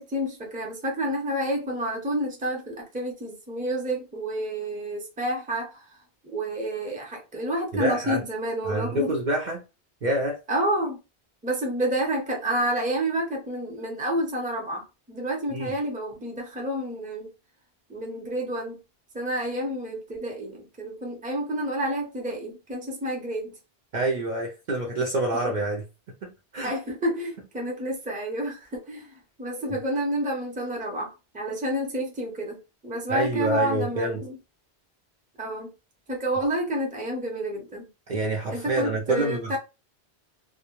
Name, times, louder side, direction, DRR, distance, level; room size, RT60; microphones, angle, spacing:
voice 1, 0.0-5.9 6.2-9.1 10.5-11.0 11.4-17.3 17.9-18.8 19.1-23.5 26.6-34.4 35.4-35.7 36.1-37.9 38.5-39.6, right 1 dB, 10° right, 0.5 m, -29 dB
voice 2, 7.7-8.2 8.6-9.6 10.0-10.4 15.5-15.7 23.9-25.8 26.2-26.7 33.1-34.2 38.1-39.5, right 1 dB, 55° right, 0.6 m, -27 dB
2.2 x 2.1 x 2.9 m
omnidirectional pair, 1.1 m